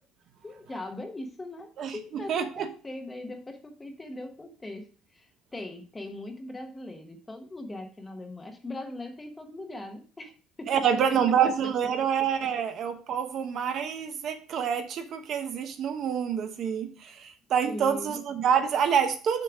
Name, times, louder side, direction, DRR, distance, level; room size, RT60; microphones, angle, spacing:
voice 1, 0.4-10.3 10.6-10.8 17.6-18.2, left 2 dB, 10° left, 5 dB, 0.9 m, -40 dB
voice 2, 2.3-2.7 10.7-19.4, right 8 dB, 45° right, 7 dB, 0.8 m, -27 dB
6.8 x 6.4 x 3.4 m, 0.38 s
cardioid pair, 170°, 0 cm